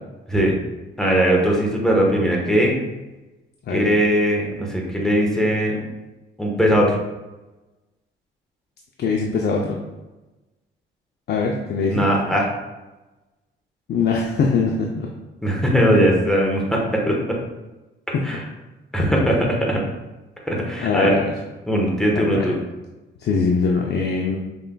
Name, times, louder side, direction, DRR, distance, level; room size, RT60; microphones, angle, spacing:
voice 1, 1.0-2.7 3.7-5.8 6.4-7.0 11.9-12.5 15.4-17.4 18.2-18.4 18.9-19.8 20.5-21.2 21.7-22.6, equal, 5° left, -2 dB, 1.1 m, -19 dB
voice 2, 3.7-4.0 9.0-9.8 11.3-12.0 13.9-15.1 18.1-18.2 20.8-21.3 22.1-22.5 23.2-24.4, left 4 dB, 55° left, 0 dB, 0.5 m, -22 dB
5.4 x 3.3 x 2.2 m, 1.1 s
cardioid pair, 90°, 20 cm